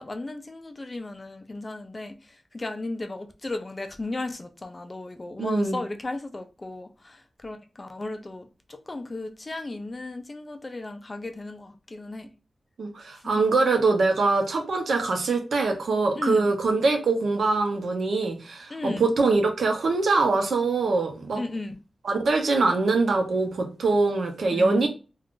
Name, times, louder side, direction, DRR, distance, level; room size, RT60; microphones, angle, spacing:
voice 1, 0.0-12.3 13.2-13.5 16.2-16.5 18.7-19.1 21.4-21.8 24.5-24.9, left 2 dB, 25° left, 0.4 m, -35 dB
voice 2, 5.4-5.8 12.8-21.4 22.0-24.9, right 3 dB, 70° right, 0.7 m, -23 dB
2.4 x 2.3 x 3.6 m
wide cardioid pair, 150°, 0 cm